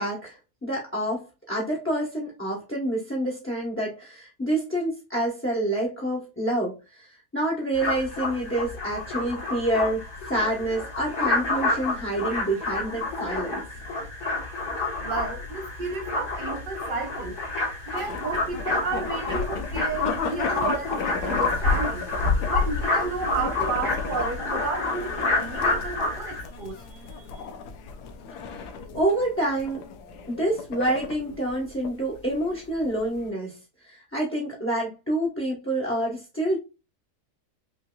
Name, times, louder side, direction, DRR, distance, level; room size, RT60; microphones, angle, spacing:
voice 1, 0.0-13.6 28.9-29.8 30.3-36.6, right 1 dB, 10° left, 0.9 m, -28 dB
sound 1, 7.7-26.4, left 3 dB, 75° left, 2.5 m, -28 dB
voice 2, 15.0-17.4 17.8-22.0 22.5-27.5, right 4 dB, 85° right, 0.4 m, -32 dB
sound 2, 18.0-33.3, left 5 dB, 90° left, 1.2 m, -36 dB
5.5 x 2.7 x 2.2 m
omnidirectional pair, 1.7 m